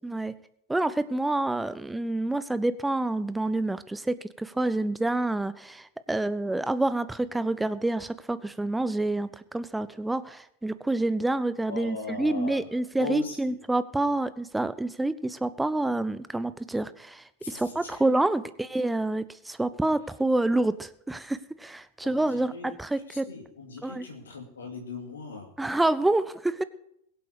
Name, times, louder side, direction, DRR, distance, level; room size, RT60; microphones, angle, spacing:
voice 1, 0.0-0.3 0.7-23.3 23.8-24.1 25.6-26.6, right 2 dB, 5° right, 15 dB, 0.7 m, -28 dB
voice 2, 11.6-12.6 13.0-13.5 17.4-18.0 22.0-22.7 23.1-25.5, left 4 dB, 70° left, 0 dB, 2.6 m, -39 dB
22.5 x 7.9 x 4.8 m, 0.74 s
figure-of-eight pair, 90°, 0 cm